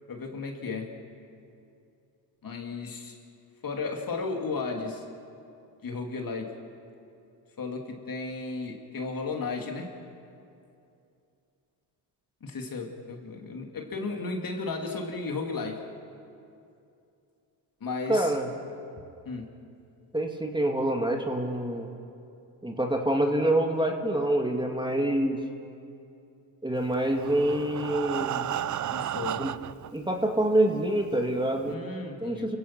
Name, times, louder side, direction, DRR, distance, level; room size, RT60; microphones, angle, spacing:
voice 1, 0.1-1.0 2.4-3.2 3.6-5.0 5.8-6.6 7.6-10.0 12.4-15.9 17.8-18.3 19.2-19.5 28.9-29.4 31.7-32.5, left 3 dB, 40° left, 2 dB, 2.9 m, -34 dB
voice 2, 18.1-18.5 20.1-21.9 22.6-25.4 26.6-28.5 29.4-29.5 29.9-31.8 32.2-32.6, right 1 dB, 10° right, 2 dB, 2.3 m, -26 dB
Breathing, 27.0-29.9 30.7-30.8 31.1-31.2 31.7-31.8, right 11 dB, 40° right, 0.6 m, -33 dB
29.0 x 16.5 x 6.1 m, 2.6 s
supercardioid pair, 60°, 49 cm